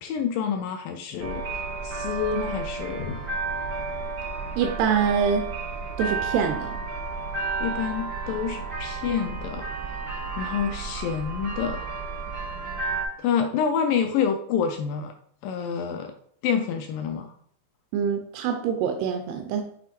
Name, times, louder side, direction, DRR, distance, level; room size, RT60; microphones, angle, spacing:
voice 1, 0.0-3.3 7.6-10.0 10.4-11.9 13.2-15.1 15.4-16.1 16.4-17.3, left 7 dB, 85° left, 6 dB, 1.9 m, -28 dB
sound 1, 1.2-13.0, right 4 dB, 70° right, 1.0 m, -32 dB
voice 2, 4.6-5.5 6.0-6.8 17.9-19.6, right 7 dB, 90° right, 5 dB, 2.7 m, -25 dB
8.6 x 3.2 x 4.2 m, 0.63 s
omnidirectional pair, 4.5 m